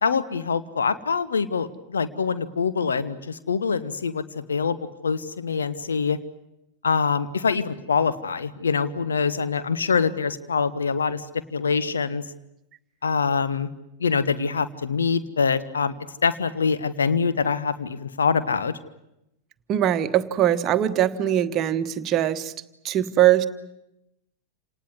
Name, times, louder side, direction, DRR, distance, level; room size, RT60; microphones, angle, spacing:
voice 1, 0.0-4.8 5.0-6.2 6.8-11.3 11.5-12.2 13.0-13.7 14.0-15.9 16.2-18.7, left 5 dB, 70° left, 13 dB, 1.1 m, -24 dB
voice 2, 19.7-22.5 22.8-23.5, right 12 dB, 35° right, 11 dB, 1.2 m, -21 dB
28.0 x 19.0 x 9.5 m, 0.87 s
figure-of-eight pair, 90°, 0 cm